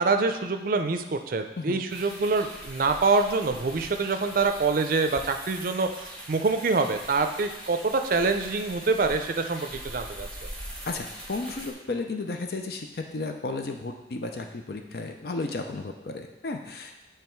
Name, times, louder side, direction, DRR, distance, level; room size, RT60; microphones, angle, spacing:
voice 1, 0.0-10.5, right 3 dB, 50° right, 7 dB, 0.4 m, -26 dB
sound 1, 1.9-11.7, equal, 5° left, 1.0 m, -42 dB
voice 2, 10.9-16.9, left 3 dB, 60° left, 4 dB, 0.5 m, -33 dB
7.3 x 3.4 x 4.5 m, 1.0 s
head